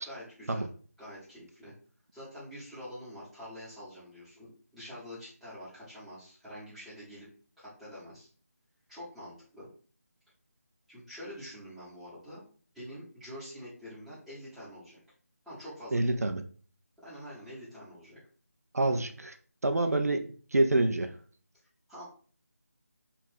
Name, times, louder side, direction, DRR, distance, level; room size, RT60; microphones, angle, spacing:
voice 1, 0.0-0.7 1.0-1.7 2.1-7.3 7.6-8.3 8.9-9.7 10.9-12.4 12.7-15.0 15.4-16.1 17.0-18.2 21.9-22.0, equal, ahead, -14 dB, 0.9 m, -46 dB
voice 2, 15.9-16.4 18.7-19.4 19.6-21.1, right 2 dB, 70° right, 7 dB, 0.4 m, -27 dB
3.3 x 2.4 x 3.3 m, 0.42 s
figure-of-eight pair, 160°, 9 cm